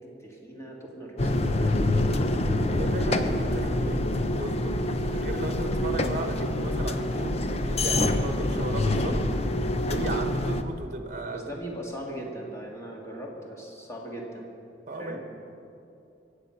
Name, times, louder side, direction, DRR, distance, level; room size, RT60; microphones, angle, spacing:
voice 1, 0.2-2.0 9.0-9.2 11.3-14.5 15.0-15.2, right 1 dB, 15° left, -2 dB, 2.4 m, -39 dB
sound 1, 1.2-10.6, left 1 dB, 35° left, 0.7 m, -26 dB
voice 2, 2.6-9.2 9.9-11.4 14.9-15.3, right 2 dB, 45° right, 6 dB, 1.1 m, -36 dB
23.5 x 8.3 x 6.0 m, 2.7 s
head